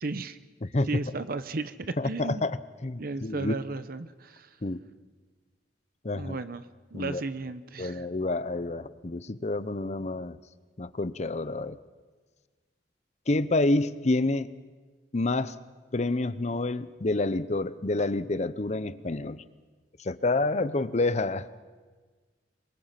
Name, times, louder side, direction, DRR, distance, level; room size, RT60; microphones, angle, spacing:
voice 1, 0.0-0.4 0.9-2.5 3.0-4.5 6.1-6.7 6.9-8.1, right 3 dB, 55° right, 12 dB, 0.8 m, -34 dB
voice 2, 0.6-1.0 2.0-3.5 4.6-4.8 6.0-6.4 6.9-7.2 7.8-10.4 10.8-11.8 13.3-14.6 15.1-15.6 15.9-19.4 20.0-21.5, left 2 dB, 40° left, 15 dB, 0.8 m, -28 dB
26.5 x 23.5 x 5.9 m, 1.4 s
head